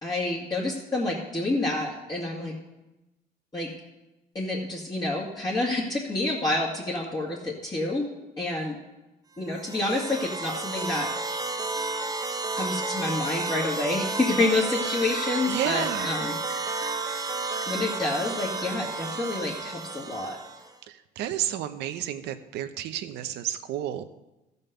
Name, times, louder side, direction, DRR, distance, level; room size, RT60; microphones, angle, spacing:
voice 1, 0.0-2.5 3.5-3.7 4.3-8.1 8.4-8.8 9.4-11.1 12.6-16.3 17.7-20.4, left 2 dB, 25° left, -6 dB, 2.2 m, -28 dB
sound 1, 9.5-20.7, right 3 dB, 20° right, 0.9 m, -32 dB
Bird, 13.9-17.6 18.0-18.8, left 4 dB, 40° left, 2.8 m, -45 dB
voice 2, 15.5-16.2 20.9-24.0, right 11 dB, 80° right, 10 dB, 0.8 m, -31 dB
14.5 x 5.4 x 6.8 m, 1.0 s
cardioid pair, 110°, 17 cm